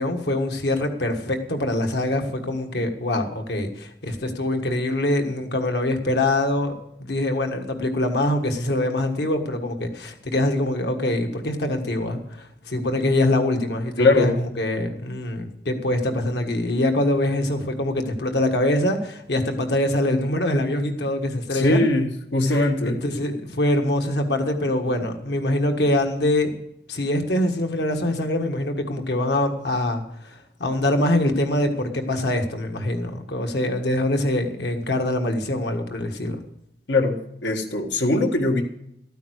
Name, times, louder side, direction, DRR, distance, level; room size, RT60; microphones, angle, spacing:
voice 1, 0.0-6.7 7.0-21.8 22.5-26.5 26.9-36.4, left 1 dB, 70° left, 5 dB, 1.6 m, -24 dB
voice 2, 14.0-14.4 21.5-23.0 36.9-38.6, left 2 dB, 90° left, 3 dB, 1.6 m, -21 dB
13.0 x 9.1 x 6.4 m, 0.77 s
head